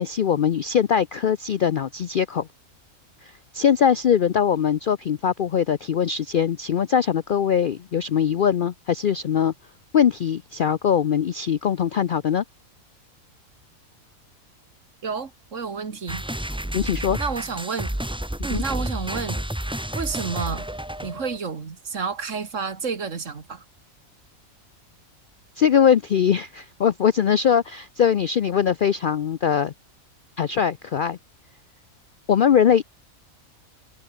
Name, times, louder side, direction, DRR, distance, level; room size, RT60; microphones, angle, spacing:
voice 1, 0.0-2.5 3.2-9.5 9.9-12.4 16.7-17.2 25.6-29.7 30.4-31.2 32.3-32.8, left 8 dB, 60° left, 0.5 m, -21 dB
voice 2, 15.0-16.2 17.2-18.0 18.4-19.4 19.9-20.7 21.0-23.6, right 5 dB, 60° right, 2.1 m, -30 dB
sound 1, 16.1-21.4, right 1 dB, 5° right, 0.8 m, -30 dB
omnidirectional pair, 1.5 m